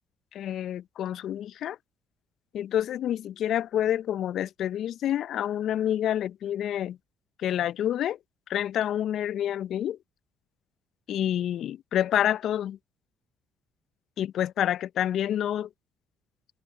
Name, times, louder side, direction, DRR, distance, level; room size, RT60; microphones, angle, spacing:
voice 1, 0.3-1.8 2.5-7.0 7.4-8.2 8.5-10.0 11.1-12.8 14.2-15.7, left 11 dB, 60° left, 0.7 m, -28 dB
hypercardioid pair, 50°, 0 cm